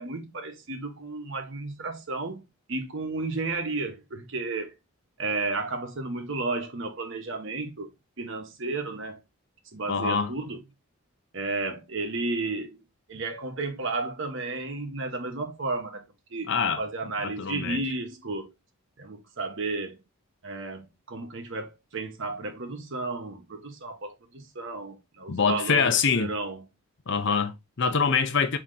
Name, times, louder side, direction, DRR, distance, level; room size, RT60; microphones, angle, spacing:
voice 1, 0.0-2.4 2.7-4.7 5.2-9.2 9.7-10.6 11.3-12.8 13.1-16.0 16.3-16.5 16.8-18.5 19.0-20.0 20.4-26.7, right 3 dB, 60° right, 1.0 m, -33 dB
voice 2, 9.9-10.3 16.5-16.8 17.2-17.8 25.3-26.3 27.1-28.6, left 5 dB, 55° left, 0.6 m, -25 dB
4.2 x 2.9 x 3.7 m
head